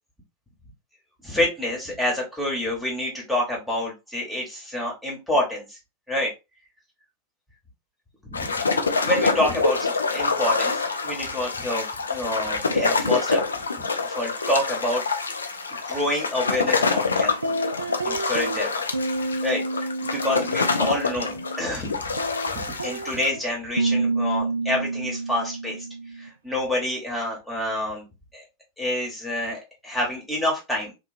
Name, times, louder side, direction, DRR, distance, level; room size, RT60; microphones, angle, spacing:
voice 1, 1.2-5.8 6.1-6.3 8.2-8.5 9.0-13.4 14.0-15.0 15.8-17.3 18.0-18.8 19.4-22.1 22.5-25.8 26.1-28.0 28.3-28.4 28.8-30.9, left 1 dB, 5° left, -3 dB, 1.1 m, -27 dB
sound 1, 8.3-23.3, left 4 dB, 75° left, 0.4 m, -26 dB
sound 2, 17.2-18.6 18.9-21.7 21.9-26.3, right 2 dB, 75° right, 0.4 m, -29 dB
2.9 x 2.2 x 2.4 m, 0.25 s
figure-of-eight pair, 90°, 0 cm